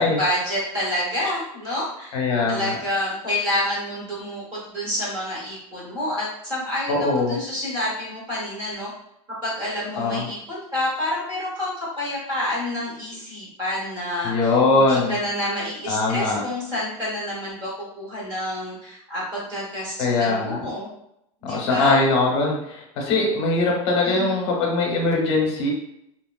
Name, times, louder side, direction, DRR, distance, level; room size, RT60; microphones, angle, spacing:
voice 1, 0.0-2.1 2.5-8.9 9.4-20.9 21.4-22.0 24.0-24.4, left 1 dB, 25° right, -6 dB, 1.2 m, -28 dB
voice 2, 2.1-2.7 6.9-7.4 10.0-10.3 14.2-15.1 15.9-16.4 20.0-20.6 21.4-25.7, left 3 dB, 55° left, -1 dB, 0.8 m, -21 dB
2.9 x 2.9 x 2.3 m, 0.79 s
supercardioid pair, 175°, 16 cm